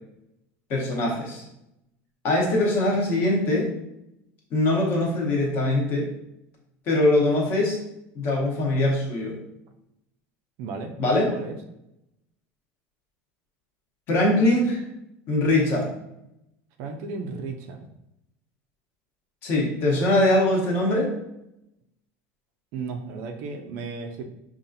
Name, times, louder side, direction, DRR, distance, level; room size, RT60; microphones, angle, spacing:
voice 1, 0.7-1.4 2.2-3.7 4.5-6.1 6.9-7.8 8.1-9.4 11.0-11.3 14.1-14.8 15.3-15.9 19.4-21.1, left 1 dB, 35° left, -1 dB, 1.0 m, -22 dB
voice 2, 10.6-10.9 11.3-11.6 16.8-17.9 22.7-24.2, right 4 dB, 50° right, 5 dB, 0.4 m, -34 dB
5.3 x 2.4 x 2.6 m, 0.85 s
cardioid pair, 175°, 6 cm